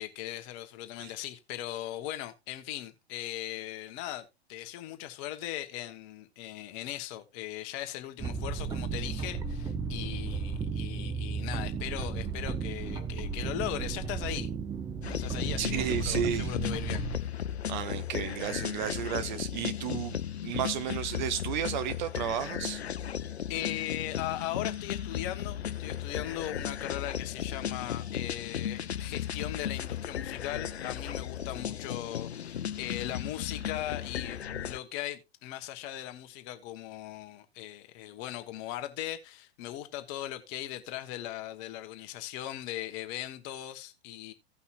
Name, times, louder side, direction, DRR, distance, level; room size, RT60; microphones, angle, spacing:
voice 1, 0.0-14.5 15.1-17.3 23.5-44.3, left 13 dB, 35° left, 1.2 m, -39 dB
sound 1, 8.2-17.2, right 5 dB, 10° right, 0.5 m, -34 dB
sound 2, 15.0-34.8, left 9 dB, 75° left, 0.6 m, -36 dB
voice 2, 15.6-16.5 17.7-22.8, right 10 dB, 45° right, 0.8 m, -33 dB
16.5 x 5.6 x 2.4 m
figure-of-eight pair, 100°, 32 cm